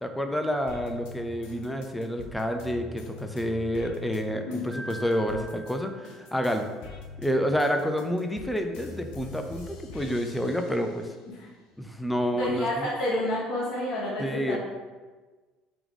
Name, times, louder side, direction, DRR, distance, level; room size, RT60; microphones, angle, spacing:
voice 1, 0.0-6.7 7.2-11.1 11.8-12.9 14.2-14.6, equal, 5° left, 5 dB, 0.5 m, -29 dB
sound 1, 0.7-5.7 6.0-11.2 11.7-12.7, left 3 dB, 75° left, 0.5 m, -44 dB
Piano, 4.7-6.8, right 1 dB, 45° right, 1.3 m, -44 dB
voice 2, 12.3-14.6, left 1 dB, 50° left, -8 dB, 1.3 m, -29 dB
3.4 x 3.0 x 3.7 m, 1.3 s
hypercardioid pair, 75°, 0 cm